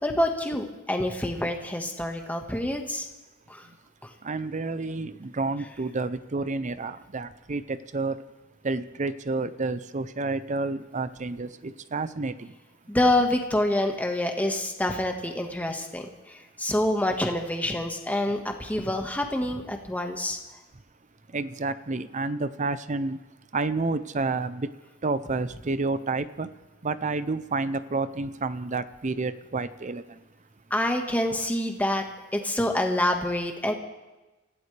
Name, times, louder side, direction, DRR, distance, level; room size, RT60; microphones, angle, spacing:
voice 1, 0.0-3.1 3.5-3.6 12.9-16.1 16.6-20.4 30.7-32.0 32.3-33.7, left 1 dB, 10° left, 3 dB, 1.6 m, -26 dB
voice 2, 4.2-8.2 8.6-12.5 21.3-23.2 23.5-24.7 25.0-26.5 26.8-30.0, right 3 dB, 35° right, 14 dB, 0.6 m, -30 dB
26.0 x 16.0 x 3.4 m, 1.1 s
head